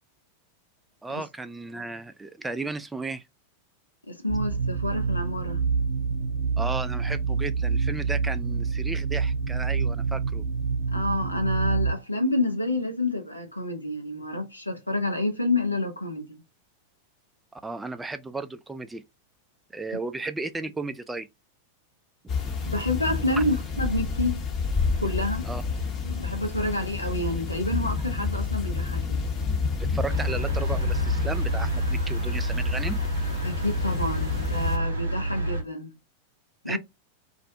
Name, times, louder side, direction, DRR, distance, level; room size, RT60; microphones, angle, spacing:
voice 1, 1.0-3.2 6.6-10.4 17.5-19.0 19.7-21.3 23.3-23.4 25.4-25.6 29.9-33.0 36.7-36.8, right 3 dB, 10° right, 0.3 m, -34 dB
voice 2, 4.0-5.6 10.9-16.4 19.9-20.0 22.7-24.4 25.0-25.5 26.0-29.3 33.4-35.9 36.6-36.8, left 2 dB, 85° left, 0.6 m, -28 dB
sound 1, 4.3-11.9, right 5 dB, 35° right, 0.8 m, -27 dB
sound 2, 22.3-34.8, left 4 dB, 30° left, 0.7 m, -29 dB
sound 3, 30.1-35.6, right 2 dB, 75° right, 0.6 m, -29 dB
2.4 x 2.0 x 2.7 m
figure-of-eight pair, 90°, 0 cm